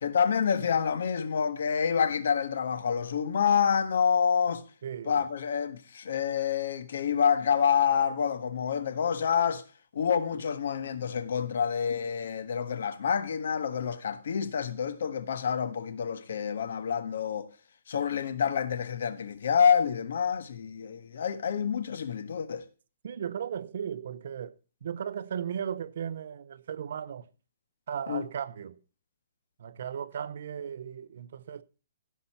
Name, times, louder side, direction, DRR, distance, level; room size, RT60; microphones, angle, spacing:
voice 1, 0.0-4.6 5.0-9.6 9.9-17.5 17.9-22.6 28.1-28.2, left 7 dB, 65° left, 1.5 m, -27 dB
voice 2, 4.8-5.2 23.0-24.5 24.8-27.3 27.9-28.8 29.6-31.6, right 8 dB, 60° right, 0.8 m, -36 dB
16.0 x 5.6 x 4.4 m
hypercardioid pair, 165°, 0 cm